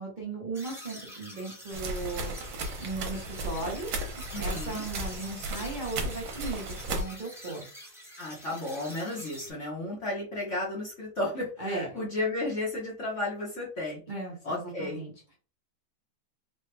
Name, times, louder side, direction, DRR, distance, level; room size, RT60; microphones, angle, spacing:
voice 1, 0.0-3.9 4.4-7.7 11.6-11.9 14.1-15.1, right 3 dB, 35° right, -5 dB, 0.8 m, -37 dB
sound 1, 0.5-9.5, equal, 5° right, 0.4 m, -46 dB
sound 2, 1.7-7.0, right 2 dB, 70° right, 1.4 m, -35 dB
voice 2, 4.3-4.8 8.2-14.0 14.4-15.0, left 2 dB, 45° left, -4 dB, 1.1 m, -33 dB
4.2 x 2.3 x 3.3 m, 0.39 s
omnidirectional pair, 2.1 m